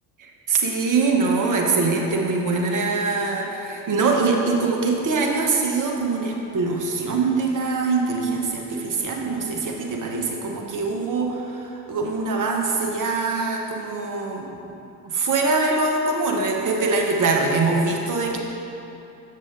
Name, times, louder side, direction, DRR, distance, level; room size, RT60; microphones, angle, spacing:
voice 1, 0.2-14.8 15.0-18.4, right 3 dB, 45° right, 0 dB, 1.3 m, -23 dB
7.4 x 6.5 x 3.8 m, 2.8 s
hypercardioid pair, 50°, 44 cm